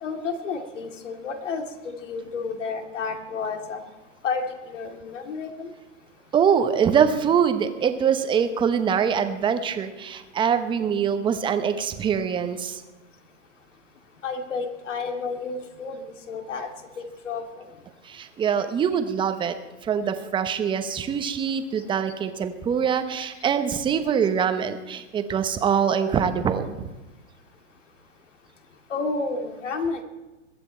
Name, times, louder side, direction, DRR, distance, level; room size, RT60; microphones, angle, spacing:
voice 1, 0.0-3.8 4.2-5.7 14.2-16.7 17.0-17.7 28.9-30.0, left 4 dB, 75° left, 5 dB, 2.4 m, -31 dB
voice 2, 6.3-12.8 18.0-19.5 19.8-26.9, right 7 dB, 15° right, 9 dB, 0.9 m, -24 dB
22.0 x 9.8 x 4.4 m, 1.1 s
hypercardioid pair, 140°, 37 cm